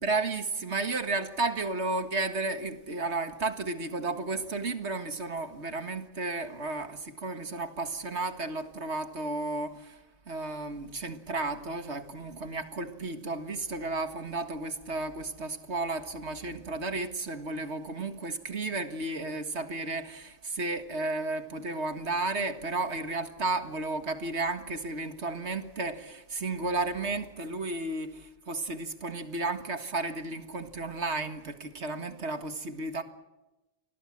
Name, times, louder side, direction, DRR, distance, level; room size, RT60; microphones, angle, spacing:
voice 1, 0.0-10.0 10.3-33.0, right 3 dB, 50° right, 2.0 m, -33 dB
28.5 x 20.5 x 7.4 m
omnidirectional pair, 1.5 m